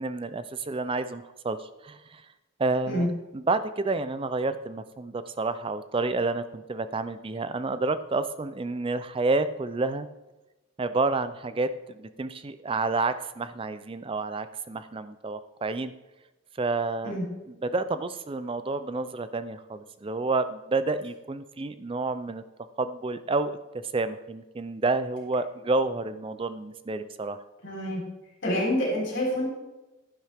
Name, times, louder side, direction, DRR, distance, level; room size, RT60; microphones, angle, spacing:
voice 1, 0.0-2.2 2.6-3.1 3.3-10.1 10.8-15.9 16.6-17.2 17.6-22.4 22.8-23.5 23.9-27.4, right 3 dB, 25° right, 12 dB, 0.4 m, -29 dB
voice 2, 27.6-28.0 28.4-29.5, equal, 55° left, -2 dB, 3.8 m, -27 dB
11.0 x 10.5 x 3.5 m, 1.0 s
head